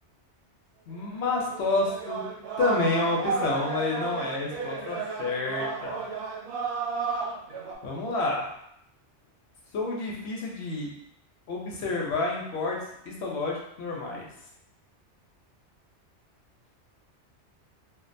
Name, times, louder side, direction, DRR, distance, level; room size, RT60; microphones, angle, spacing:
voice 1, 0.9-2.2 2.6-6.0 7.8-8.6 9.7-10.9 11.5-12.8 13.1-14.3, left 3 dB, 70° left, -2 dB, 0.9 m, -29 dB
sound 1, 1.1-1.2 1.5-7.7, right 5 dB, 65° right, 0.7 m, -33 dB
2.4 x 2.2 x 2.5 m, 0.75 s
omnidirectional pair, 1.2 m